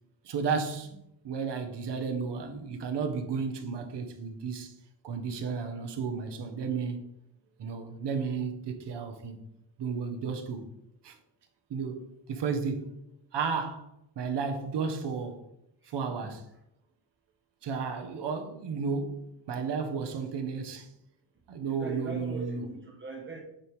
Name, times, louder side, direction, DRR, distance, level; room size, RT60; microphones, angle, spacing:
voice 1, 0.2-0.9 1.2-4.7 5.0-7.1 7.6-9.4 9.8-10.6 11.0-11.2 11.7-12.9 13.3-13.9 14.2-15.4 15.9-16.4 17.6-20.9 21.5-22.7, right 5 dB, 60° right, 1.2 m, -33 dB
voice 2, 21.6-23.4, right 4 dB, 25° right, 1.2 m, -40 dB
8.9 x 3.4 x 4.7 m
wide cardioid pair, 170°, 46 cm